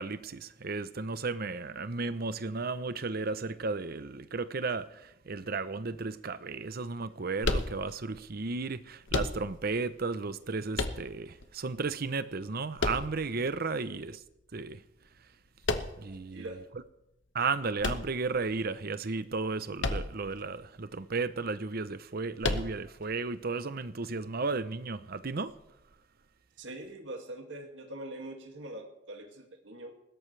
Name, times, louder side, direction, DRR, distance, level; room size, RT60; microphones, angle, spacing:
voice 1, 0.0-14.2 14.5-14.8 16.0-16.5 17.3-25.5, right 4 dB, 55° right, 0.8 m, -34 dB
sound 1, 7.4-8.2 9.1-9.8 10.7-11.5 12.8-13.6 15.6-16.2 17.8-18.7 19.8-20.4 20.6-20.7 22.4-23.1, left 2 dB, 75° left, 1.1 m, -32 dB
voice 2, 16.3-16.6 26.6-30.0, right 1 dB, 70° right, 2.3 m, -43 dB
20.5 x 16.5 x 3.3 m
head